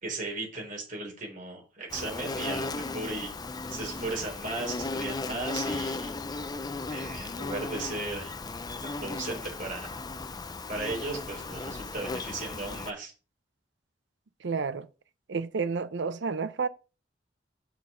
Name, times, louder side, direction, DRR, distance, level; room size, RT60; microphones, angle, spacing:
voice 1, 0.0-3.3 3.7-6.1 6.9-8.3 8.8-10.0 10.7-13.1, right 2 dB, 45° right, 4.0 m, -36 dB
Insect, 1.9-12.9, left 3 dB, 20° left, 0.5 m, -36 dB
voice 2, 14.4-14.9 15.3-16.7, right 5 dB, 70° right, 0.6 m, -30 dB
6.1 x 5.8 x 5.0 m
head